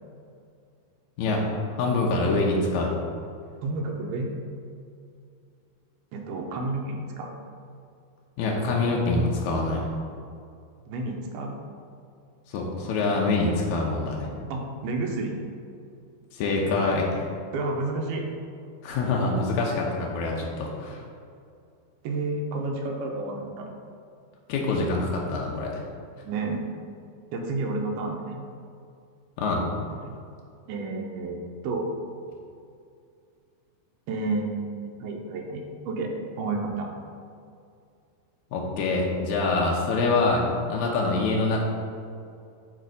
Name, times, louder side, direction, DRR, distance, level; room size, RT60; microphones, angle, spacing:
voice 1, 1.8-2.9 8.4-9.8 12.5-14.3 16.3-17.3 18.8-21.0 24.5-25.7 29.4-29.6 38.5-41.6, left 3 dB, 85° left, -2 dB, 1.6 m, -25 dB
voice 2, 3.6-4.3 6.1-7.4 10.9-11.6 14.5-15.4 17.5-18.3 22.0-23.7 26.2-26.7 27.3-28.4 29.9-30.2 30.7-31.4 31.6-31.9 34.1-36.1 36.4-36.9, right 3 dB, 80° right, 1 dB, 2.7 m, -30 dB
8.9 x 3.3 x 5.1 m, 2.4 s
omnidirectional pair, 4.4 m